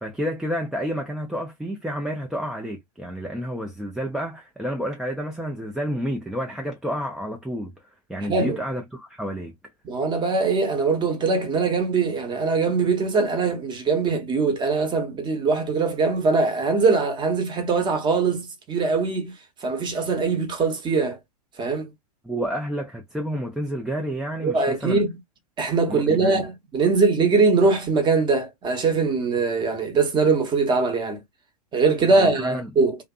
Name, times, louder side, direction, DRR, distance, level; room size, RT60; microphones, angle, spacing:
voice 1, 0.0-7.7 8.1-9.5 22.2-25.0 25.9-26.4 32.1-32.7, equal, 5° right, 0.4 m, -30 dB
voice 2, 8.3-8.6 9.8-19.3 19.6-21.2 21.6-21.9 24.4-25.1 25.6-31.2 31.7-33.0, right 4 dB, 20° right, 0.9 m, -22 dB
2.5 x 2.5 x 2.3 m
hypercardioid pair, 115°, 21 cm